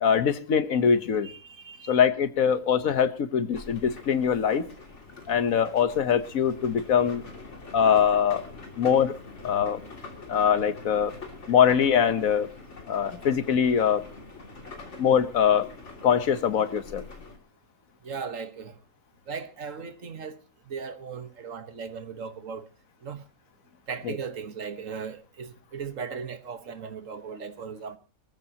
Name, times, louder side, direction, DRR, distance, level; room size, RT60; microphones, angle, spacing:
voice 1, 0.0-1.3 1.9-4.7 5.3-7.2 7.7-8.4 8.8-9.2 9.4-9.8 10.3-11.1 11.5-12.5 12.9-14.0 15.0-15.7 16.0-17.0 24.0-24.2, left 7 dB, 80° left, 1.5 m, -23 dB
voice 2, 1.2-2.0 18.0-18.8 19.3-20.4 20.7-22.7 23.0-23.2 23.9-28.0, right 6 dB, 70° right, 1.7 m, -37 dB
sound 1, 3.5-17.4, left 3 dB, 55° left, 3.1 m, -45 dB
24.0 x 14.5 x 2.9 m
omnidirectional pair, 1.4 m